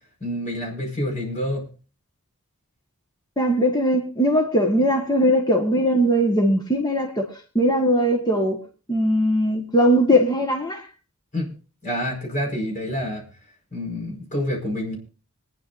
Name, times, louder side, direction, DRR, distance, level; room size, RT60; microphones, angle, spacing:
voice 1, 0.2-1.7 11.3-11.5 11.8-13.2 13.7-15.0, left 1 dB, 35° left, 5.1 m, -27 dB
voice 2, 3.4-7.3 7.5-8.6 8.9-10.9, equal, 20° left, 1.5 m, -20 dB
25.5 x 10.0 x 2.6 m
head